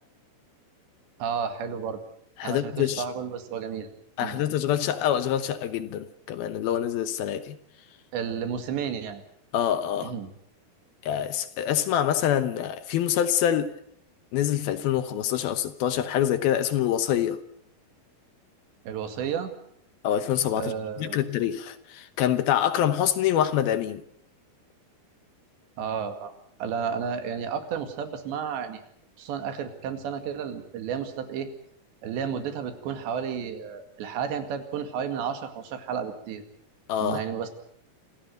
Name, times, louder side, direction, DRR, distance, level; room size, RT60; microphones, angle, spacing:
voice 1, 1.2-2.0 2.4-3.9 4.2-4.4 8.1-9.2 10.0-10.3 18.9-19.5 20.6-21.3 25.8-26.3 26.6-28.8 29.2-31.5 32.0-36.4 37.0-37.5, right 7 dB, 85° right, 4.3 m, -32 dB
voice 2, 2.4-3.0 4.2-7.6 9.5-10.1 11.0-13.7 14.3-17.4 20.0-24.0 36.9-37.2, left 10 dB, 70° left, 2.6 m, -26 dB
27.0 x 16.0 x 7.8 m
omnidirectional pair, 4.9 m